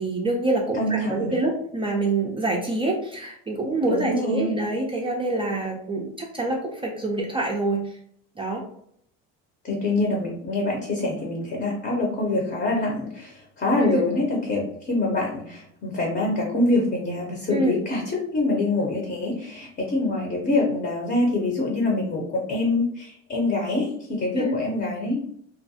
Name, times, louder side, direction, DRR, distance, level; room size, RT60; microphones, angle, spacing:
voice 1, 0.0-8.0 8.4-8.6 13.8-14.1 17.5-17.8 24.4-24.6, right 2 dB, 15° right, -1 dB, 0.3 m, -26 dB
voice 2, 0.7-1.3 3.9-4.5 9.6-25.2, left 2 dB, 30° left, -1 dB, 0.7 m, -25 dB
2.4 x 2.1 x 2.6 m, 0.68 s
supercardioid pair, 105°, 31 cm